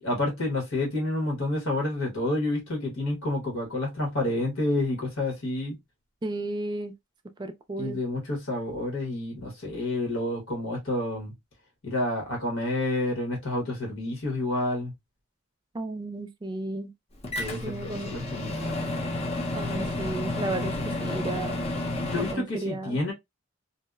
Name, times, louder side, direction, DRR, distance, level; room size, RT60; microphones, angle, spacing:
voice 1, 0.0-5.8 7.8-11.3 11.8-14.9 17.4-18.8 22.0-23.1, left 2 dB, 75° left, 1.1 m, -29 dB
voice 2, 6.2-6.9 7.4-8.0 15.7-16.9 17.6-18.1 19.5-21.6 22.1-23.0, right 2 dB, 20° right, 0.3 m, -33 dB
Microwave oven, 17.2-22.3, left 2 dB, 30° left, 0.6 m, -31 dB
2.6 x 2.1 x 2.3 m
head